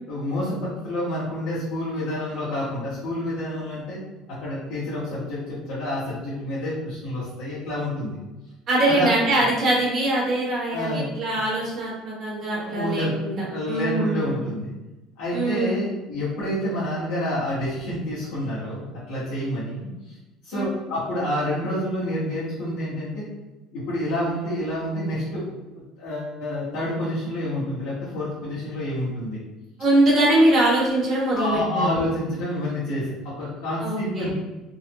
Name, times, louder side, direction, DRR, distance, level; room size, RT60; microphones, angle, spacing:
voice 1, 0.1-4.0 4.3-8.2 8.8-9.1 10.7-11.1 12.5-13.2 13.5-14.7 15.2-20.1 20.4-23.2 23.7-25.4 25.7-29.4 31.3-34.3, left 1 dB, 80° left, -11 dB, 1.1 m, -28 dB
voice 2, 8.7-14.3 15.3-15.8 20.5-20.6 29.8-31.9 33.8-34.3, right 1 dB, 30° right, -6 dB, 1.2 m, -22 dB
4.0 x 2.0 x 2.9 m, 1.0 s
cardioid pair, 170°, 0 cm